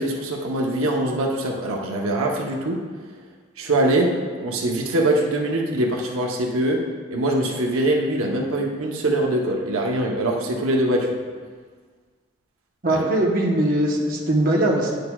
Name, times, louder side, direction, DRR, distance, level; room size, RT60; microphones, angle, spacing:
voice 1, 0.0-2.8 3.6-4.1 4.4-6.8 7.1-11.2 12.9-13.0, right 1 dB, 90° right, 0 dB, 0.8 m, -23 dB
voice 2, 12.8-15.0, right 1 dB, 45° right, -2 dB, 0.9 m, -21 dB
9.7 x 6.4 x 2.3 m, 1.6 s
head